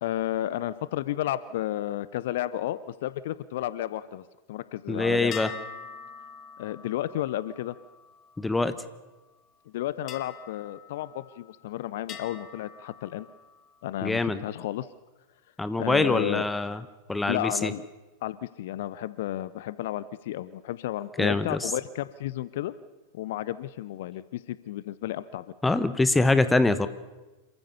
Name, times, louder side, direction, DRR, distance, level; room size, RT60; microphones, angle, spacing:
voice 1, 0.0-5.4 6.6-7.8 9.7-13.3 13.8-14.9 15.8-16.5 17.3-17.9 18.2-22.7 23.1-25.5, left 13 dB, 55° left, 17 dB, 0.6 m, -32 dB
voice 2, 4.9-5.5 8.4-8.7 14.0-14.4 15.6-16.8 17.1-17.7 21.2-21.7 25.6-26.9, left 2 dB, 10° left, 13 dB, 1.1 m, -24 dB
sound 1, 5.3-9.0 10.1-11.6 12.1-13.8, left 8 dB, 30° left, 1.6 m, -44 dB
27.0 x 14.5 x 6.9 m, 1.2 s
figure-of-eight pair, 90°, 0 cm